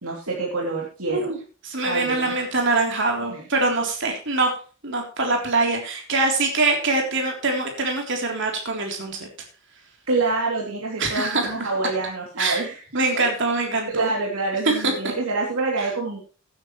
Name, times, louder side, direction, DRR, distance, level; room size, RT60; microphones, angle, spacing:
voice 1, 0.0-1.3 1.8-2.3 3.3-3.4 10.1-12.8 13.1-13.3 13.9-16.2, right 3 dB, 85° right, -3 dB, 3.0 m, -26 dB
voice 2, 1.6-4.5 4.8-9.3 11.0-11.7 12.4-12.7 12.9-14.1 14.6-14.9, right 3 dB, 55° right, 1 dB, 3.6 m, -23 dB
16.0 x 9.5 x 3.2 m, 0.38 s
head